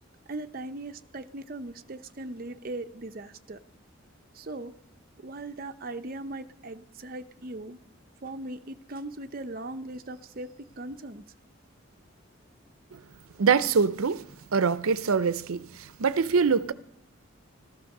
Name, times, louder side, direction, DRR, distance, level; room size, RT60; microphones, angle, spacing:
voice 1, 0.3-3.6 4.4-4.7 5.2-7.8 8.2-11.2, right 2 dB, 45° right, 0.7 m, -39 dB
voice 2, 13.4-14.2 14.5-15.6 16.0-16.7, right 5 dB, 90° right, 0.6 m, -23 dB
15.0 x 13.0 x 6.6 m
head